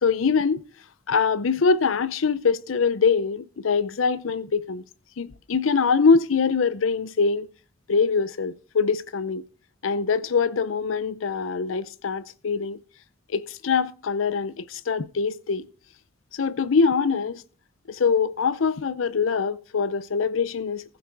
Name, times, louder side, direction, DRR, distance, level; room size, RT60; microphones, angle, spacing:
voice 1, 0.0-0.6 1.1-4.8 5.2-7.5 7.9-9.5 9.8-12.8 13.3-15.7 16.3-17.4 17.9-20.8, left 5 dB, 85° left, 0.6 m, -23 dB
15.0 x 8.2 x 4.6 m
head